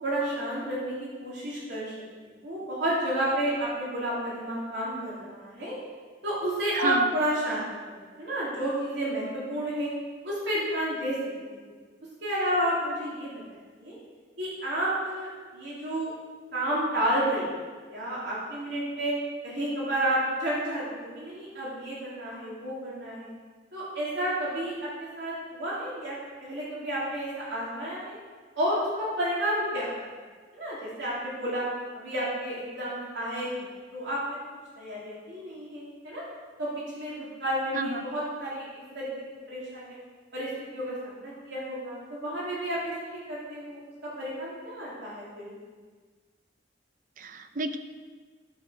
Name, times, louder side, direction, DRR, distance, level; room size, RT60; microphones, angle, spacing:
voice 1, 0.0-1.9 2.2-5.7 6.2-9.9 10.2-11.1 11.5-11.6 12.2-13.3 13.8-13.9 14.4-15.3 15.5-16.1 16.5-17.5 17.9-19.1 19.4-23.3 23.7-28.2 28.5-29.9 30.5-31.6 31.9-34.4 34.7-36.2 36.6-39.1 39.5-39.9 40.3-43.8 44.2-45.5, right 1 dB, 70° right, -7 dB, 3.3 m, -31 dB
voice 2, 6.7-7.1 37.7-38.0 47.2-47.8, right 2 dB, 45° right, 8 dB, 0.7 m, -30 dB
12.0 x 6.4 x 6.4 m, 1.5 s
head